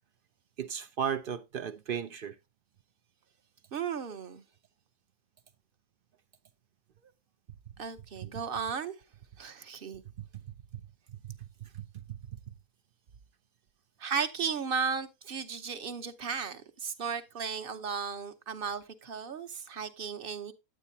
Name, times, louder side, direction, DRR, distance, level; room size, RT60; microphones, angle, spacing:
voice 1, 0.6-2.4 10.2-10.3 11.1-12.5, right 8 dB, 60° right, 0.5 m, -36 dB
voice 2, 3.7-4.4 7.8-8.9 9.4-10.0 14.0-20.5, right 6 dB, 45° right, 0.9 m, -35 dB
9.7 x 9.1 x 2.7 m
omnidirectional pair, 1.5 m